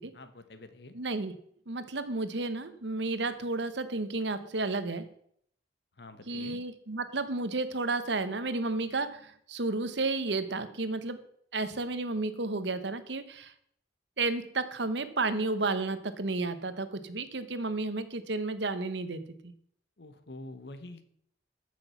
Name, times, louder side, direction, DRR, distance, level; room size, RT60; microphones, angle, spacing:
voice 1, 0.1-0.9 6.0-6.6 20.0-21.0, left 2 dB, 65° left, 10 dB, 1.2 m, -46 dB
voice 2, 0.9-1.3 1.7-5.0 6.3-11.2 11.5-13.5 14.2-19.5, right 3 dB, 75° right, 12 dB, 1.1 m, -32 dB
14.0 x 6.3 x 5.8 m, 0.67 s
head